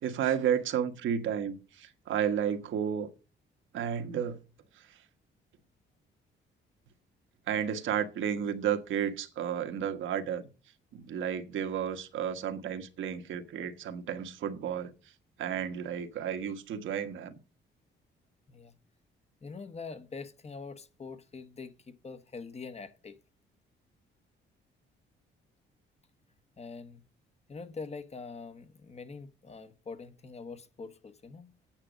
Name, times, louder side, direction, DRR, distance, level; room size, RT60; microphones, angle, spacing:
voice 1, 0.0-3.1 3.7-4.4 7.5-10.4 10.9-14.9 15.4-17.4, right 8 dB, 75° right, 1.4 m, -32 dB
voice 2, 19.4-23.2 26.6-27.0 27.5-31.5, left 4 dB, 35° left, 1.2 m, -44 dB
8.8 x 7.5 x 5.1 m
cardioid pair, 90°, 20 cm